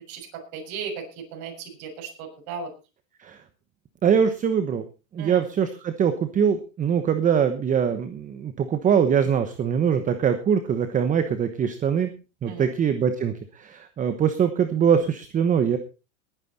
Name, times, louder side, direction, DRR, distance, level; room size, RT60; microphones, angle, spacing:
voice 1, 0.5-1.0 1.3-2.7 5.2-5.4 12.5-12.7, right 5 dB, 45° right, 2 dB, 6.5 m, -35 dB
voice 2, 4.0-4.8 5.1-12.1 12.4-15.8, right 7 dB, 20° right, 10 dB, 1.1 m, -23 dB
20.0 x 9.6 x 4.2 m, 0.32 s
supercardioid pair, 140°, 41 cm